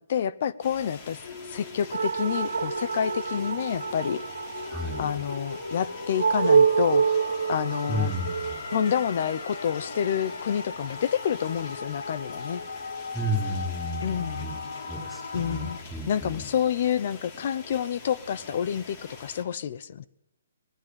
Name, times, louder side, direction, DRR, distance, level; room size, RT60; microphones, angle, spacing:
voice 1, 0.1-1.2 1.5-4.2 5.0-7.2 7.5-8.1 8.7-12.6 14.0-14.5 15.3-15.8 16.1-20.1, left 8 dB, 45° left, 17 dB, 0.9 m, -28 dB
sound 1, 0.6-19.4, left 4 dB, 30° left, 4.6 m, -46 dB
sound 2, 1.2-15.8, left 4 dB, 85° left, 2.3 m, -39 dB
sound 3, 1.9-10.7, right 6 dB, 85° right, 1.0 m, -27 dB
voice 2, 4.7-5.2 7.9-8.6 13.1-16.4, equal, ahead, 1 dB, 6.0 m, -32 dB
23.5 x 20.0 x 9.0 m, 0.82 s
hypercardioid pair, 170°, 0 cm